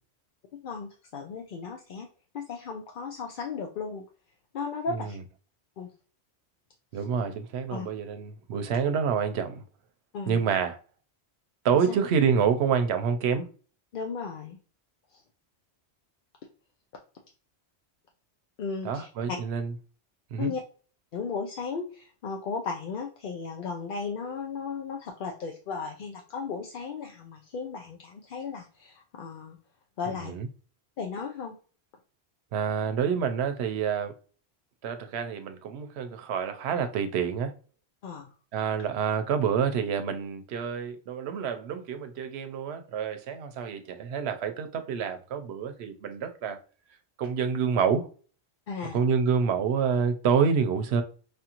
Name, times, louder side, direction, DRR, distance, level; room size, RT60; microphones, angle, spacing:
voice 1, 0.5-2.1 2.3-4.0 4.5-5.2 5.8-5.9 6.9-7.0 7.7-7.9 10.1-10.5 11.9-12.0 13.9-14.6 15.1-15.2 18.6-19.4 20.4-20.6 21.1-29.6 30.0-30.3 31.0-31.5 38.0-38.3 48.7-49.0, left 5 dB, 60° left, 0.6 m, -35 dB
voice 2, 6.9-9.6 10.3-10.8 11.6-13.5 18.8-19.7 20.3-20.5 30.2-30.5 32.5-34.1 34.8-37.5 38.5-46.6 47.2-48.1 48.9-51.0, right 6 dB, 75° right, 0.8 m, -27 dB
5.0 x 2.5 x 2.9 m
omnidirectional pair, 1.1 m